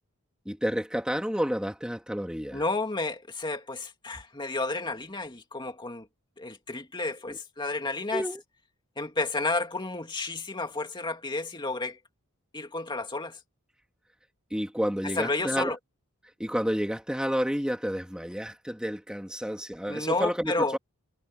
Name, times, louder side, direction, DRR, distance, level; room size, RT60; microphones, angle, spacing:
voice 1, 0.5-2.6 7.3-7.4 8.1-8.4 14.5-15.7 16.4-20.8, equal, 5° right, 2.6 m, -30 dB
voice 2, 2.5-6.1 6.4-8.2 9.0-12.0 12.5-13.4 15.0-15.8 19.9-20.8, left 3 dB, 20° left, 2.4 m, -31 dB
head